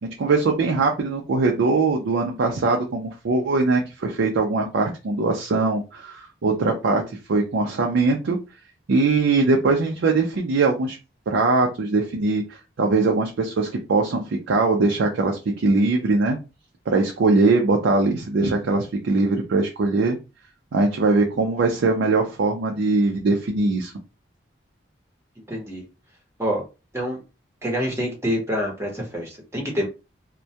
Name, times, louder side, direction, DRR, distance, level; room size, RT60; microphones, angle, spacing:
voice 1, 0.0-7.0 7.3-8.4 8.9-11.0 11.3-12.4 12.8-16.4 16.9-20.2 20.7-23.9, right 3 dB, 80° right, 1 dB, 0.4 m, -21 dB
voice 2, 25.5-25.8 26.4-26.6 26.9-27.2 27.6-29.9, equal, 15° right, -1 dB, 0.8 m, -26 dB
2.2 x 2.1 x 2.7 m, 0.28 s
head